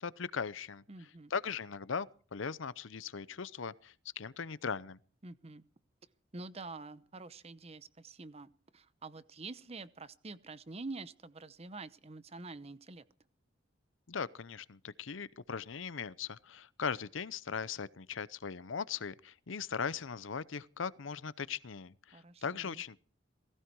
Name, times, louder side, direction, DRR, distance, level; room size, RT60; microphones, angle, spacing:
voice 1, 0.0-0.8 1.3-5.0 14.1-23.0, left 6 dB, 75° left, 0.7 m, -39 dB
voice 2, 0.9-1.3 5.2-5.6 6.3-13.0 22.1-22.8, right 3 dB, 30° right, 0.8 m, -47 dB
18.0 x 16.5 x 4.7 m
head